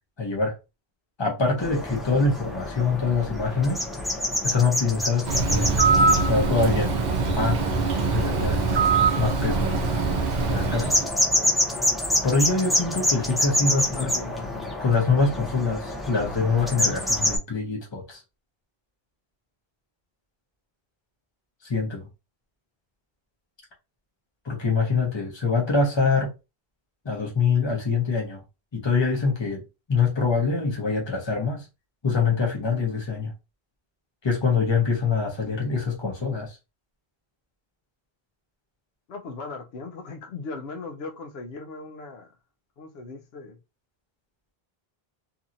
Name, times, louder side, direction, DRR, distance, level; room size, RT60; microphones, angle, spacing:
voice 1, 0.2-0.6 1.2-3.8 4.4-5.7 6.1-6.9 7.3-7.7 8.1-8.9 9.2-9.9 10.5-11.1 12.2-18.2 21.6-22.1 24.4-26.3 27.0-28.4 28.7-29.6 29.9-31.7 32.0-33.3 34.2-36.6, left 4 dB, 30° left, 0.8 m, -25 dB
sound 1, 1.6-17.4, left 1 dB, ahead, 0.5 m, -28 dB
Bird, 5.3-11.1, right 4 dB, 55° right, 0.6 m, -23 dB
voice 2, 13.7-14.5 39.1-42.3 42.8-43.6, left 3 dB, 80° left, 0.8 m, -38 dB
2.8 x 2.7 x 2.5 m
omnidirectional pair, 1.0 m